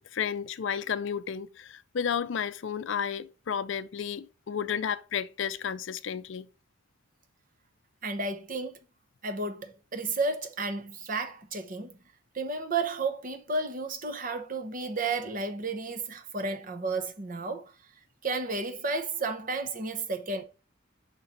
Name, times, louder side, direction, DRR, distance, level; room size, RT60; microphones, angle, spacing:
voice 1, 0.0-6.5, left 7 dB, 60° left, 0.4 m, -32 dB
voice 2, 8.0-8.8 9.2-12.0 12.3-17.7 18.2-20.4, right 3 dB, 40° right, 0.9 m, -32 dB
5.8 x 3.9 x 5.6 m
head